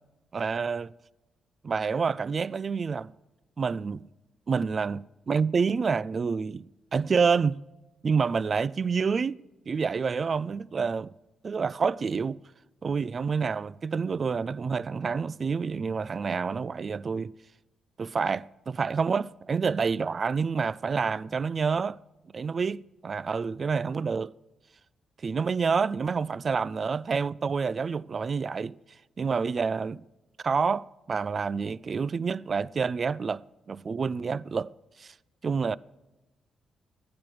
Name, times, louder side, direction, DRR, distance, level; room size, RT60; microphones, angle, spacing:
voice 1, 0.3-0.9 1.6-3.1 3.6-4.1 4.5-7.6 8.0-11.1 11.4-12.4 12.8-17.3 18.0-22.0 22.3-24.3 25.2-28.8 29.2-30.0 30.4-34.7 35.0-35.1 35.4-35.8, right 5 dB, 50° right, 0.3 m, -28 dB
12.0 x 9.5 x 6.3 m
supercardioid pair, 60°, 0 cm